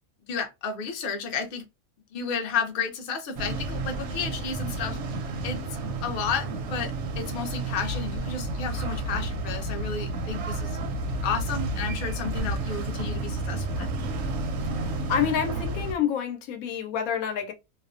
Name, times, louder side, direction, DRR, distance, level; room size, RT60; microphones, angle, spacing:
voice 1, 0.3-1.6 2.1-5.0 5.4-5.6 6.0-10.7 11.2-13.9, left 6 dB, 55° left, 0.6 m, -32 dB
sound 1, 3.4-15.9, right 2 dB, 65° right, 0.8 m, -31 dB
voice 2, 15.1-17.5, left 8 dB, 80° left, 1.0 m, -27 dB
2.4 x 2.1 x 2.4 m
omnidirectional pair, 1.5 m